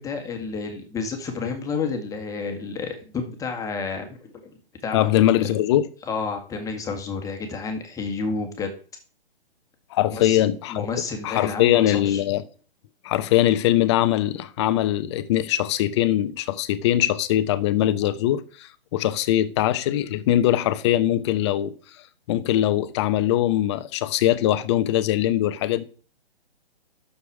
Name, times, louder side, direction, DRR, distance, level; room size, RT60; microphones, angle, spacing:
voice 1, 0.0-4.3 4.8-5.2 6.1-8.7 10.1-10.4 10.7-12.2, left 4 dB, 10° left, 1.8 m, -30 dB
voice 2, 4.9-5.9 9.9-10.9 11.2-12.4 13.0-21.7 22.3-25.8, left 13 dB, 25° left, 0.9 m, -21 dB
12.5 x 7.0 x 4.9 m
figure-of-eight pair, 135°, 31 cm